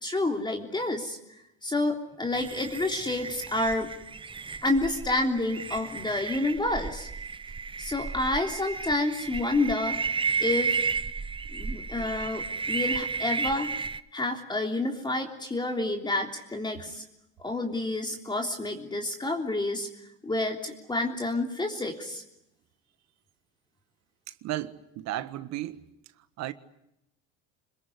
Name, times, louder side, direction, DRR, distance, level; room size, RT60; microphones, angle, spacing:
voice 1, 0.0-3.9 4.6-7.1 7.8-10.0 10.4-10.8 11.5-13.7 14.1-17.0 17.4-19.9 20.2-22.2, left 2 dB, 15° left, 3.4 m, -29 dB
sound 1, 2.3-14.0, right 5 dB, 15° right, 1.0 m, -33 dB
voice 2, 24.4-25.8 26.4-26.5, right 15 dB, 60° right, 1.6 m, -34 dB
26.5 x 21.5 x 9.8 m
supercardioid pair, 105°, 30 cm